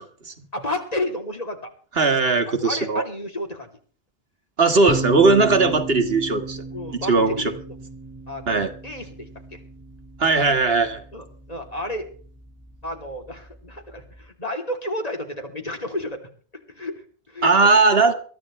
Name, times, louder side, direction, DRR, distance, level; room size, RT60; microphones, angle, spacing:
voice 1, 0.5-1.7 2.6-3.7 4.7-4.8 6.7-7.8 8.3-9.6 11.1-12.1 12.8-16.2 16.7-17.8, left 1 dB, 40° left, 3 dB, 3.1 m, -32 dB
voice 2, 2.0-3.0 4.6-6.6 7.1-7.5 8.5-8.7 10.2-11.0 17.4-18.1, right 3 dB, 70° right, 6 dB, 1.9 m, -18 dB
sound 1, 4.9-14.3, right 3 dB, 15° right, 0.9 m, -36 dB
22.5 x 14.0 x 3.2 m, 0.43 s
omnidirectional pair, 1.1 m